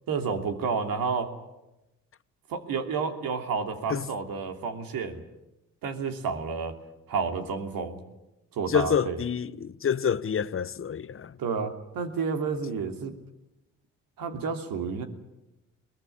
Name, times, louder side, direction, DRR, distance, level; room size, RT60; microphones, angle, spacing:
voice 1, 0.1-1.3 2.5-5.2 5.8-6.7 7.1-8.0 8.5-9.2 11.4-13.1 14.2-15.0, right 5 dB, 65° right, 3.0 m, -30 dB
voice 2, 8.7-11.4, left 7 dB, 35° left, 1.0 m, -27 dB
22.5 x 18.5 x 9.7 m
hypercardioid pair, 50°, 37 cm